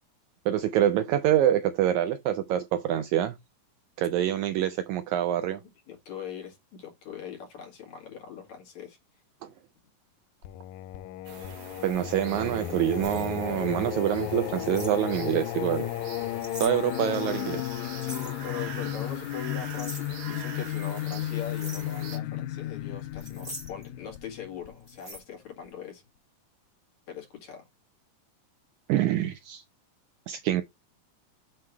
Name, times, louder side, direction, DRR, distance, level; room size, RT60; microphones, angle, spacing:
voice 1, 0.5-3.3 4.0-5.6 9.4-9.5 11.8-15.9 16.6-17.6 28.9-29.6 30.3-30.6, right 11 dB, 80° right, 1.7 m, -26 dB
voice 2, 5.6-9.0 18.1-26.0 27.1-27.7, left 8 dB, 60° left, 3.4 m, -41 dB
Singing, 10.4-25.2, left 14 dB, 85° left, 1.7 m, -34 dB
sound 1, 11.3-22.2, right 8 dB, 65° right, 2.2 m, -45 dB
sound 2, 13.0-13.3 14.5-14.9 16.1-16.7 18.0-18.3 19.4-20.1 21.0-21.2 21.5-21.9 23.2-23.9 24.9-25.2, right 1 dB, 20° right, 1.0 m, -42 dB
7.6 x 3.1 x 4.5 m
omnidirectional pair, 3.8 m